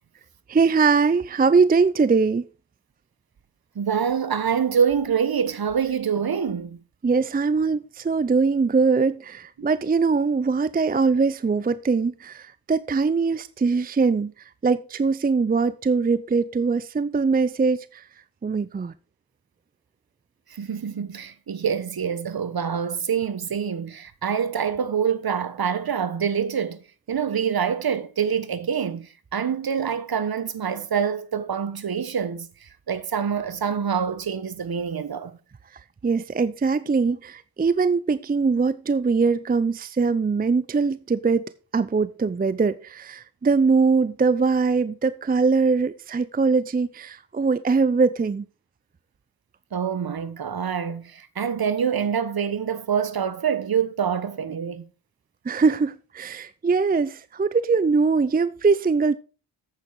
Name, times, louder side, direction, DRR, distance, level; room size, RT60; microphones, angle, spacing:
voice 1, 0.5-2.4 7.0-14.3 14.6-18.0 18.4-18.9 36.0-48.4 55.5-59.1, right 4 dB, 20° right, 0.5 m, -22 dB
voice 2, 3.7-6.7 20.5-26.8 27.1-35.3 49.7-54.8, right 7 dB, 50° right, 1.3 m, -26 dB
9.0 x 8.2 x 4.7 m
cardioid pair, 50°, 46 cm